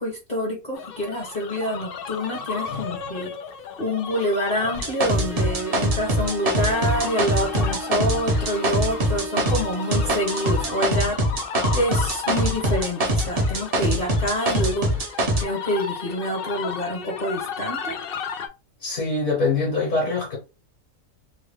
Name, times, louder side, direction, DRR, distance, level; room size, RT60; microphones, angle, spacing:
voice 1, 0.0-3.3 3.8-11.2 11.7-18.0, equal, 35° left, 0.9 m, -27 dB
sound 1, 0.7-18.5, left 6 dB, 85° left, 0.5 m, -35 dB
sound 2, 4.7-9.7 9.9-15.4, right 1 dB, 40° right, 0.5 m, -23 dB
sound 3, 5.1-11.1, right 6 dB, 60° right, 0.9 m, -37 dB
voice 2, 18.8-20.4, left 3 dB, 60° left, 1.5 m, -24 dB
3.2 x 2.2 x 3.3 m
omnidirectional pair, 1.5 m